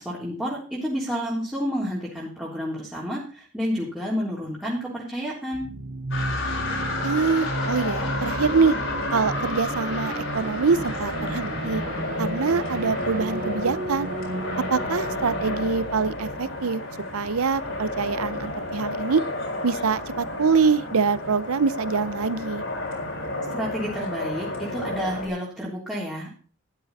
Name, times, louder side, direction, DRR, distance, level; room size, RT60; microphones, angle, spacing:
voice 1, 0.0-5.7 23.5-26.4, equal, 5° right, -6 dB, 3.5 m, -30 dB
sound 1, 5.5-17.1, right 2 dB, 40° right, 1.0 m, -33 dB
sound 2, 6.1-25.3, left 2 dB, 55° left, 4.5 m, -31 dB
voice 2, 7.0-8.8 9.1-11.8 12.2-14.1 14.7-16.8 17.1-19.2 19.6-22.6, right 5 dB, 80° right, 18 dB, 0.7 m, -24 dB
13.0 x 12.0 x 4.2 m, 0.40 s
head